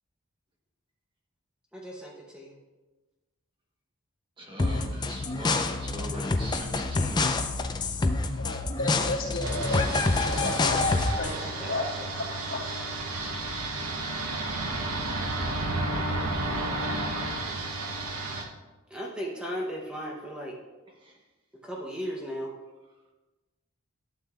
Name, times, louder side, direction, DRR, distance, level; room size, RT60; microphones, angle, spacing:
voice 1, 1.7-2.5 11.4-11.7 18.9-20.6 21.6-22.5, equal, 5° right, -2 dB, 0.8 m, -36 dB
voice 2, 4.4-7.2, equal, 25° right, 0 dB, 1.1 m, -40 dB
sound 1, 4.6-11.4, left 3 dB, 20° left, 0.3 m, -27 dB
voice 3, 8.4-9.9 10.2-10.8 11.2-11.8 12.2-12.8, left 2 dB, 70° left, -4 dB, 2.6 m, -33 dB
sound 2, 9.4-18.4, right 2 dB, 90° right, 1.0 m, -32 dB
12.0 x 7.6 x 2.4 m, 1.2 s
head